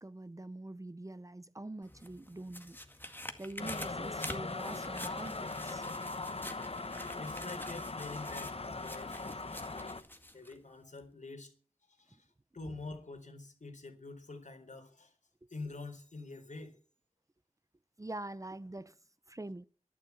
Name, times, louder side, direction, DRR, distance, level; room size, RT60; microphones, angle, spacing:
voice 1, 0.0-2.8 3.4-5.9 7.5-7.6 12.1-12.2 15.4-15.5 18.0-19.0 19.3-19.6, right 2 dB, 25° right, 0.7 m, -45 dB
sound 1, 1.8-10.6 11.0-11.1, left 1 dB, 15° left, 2.0 m, -48 dB
sound 2, 3.6-10.0, left 3 dB, 55° left, 1.1 m, -40 dB
voice 2, 7.1-10.0 10.3-11.5 12.0-12.2 12.5-15.1 15.5-16.8, left 3 dB, 85° left, 4.1 m, -46 dB
12.0 x 11.0 x 8.5 m
wide cardioid pair, 60°, 12 cm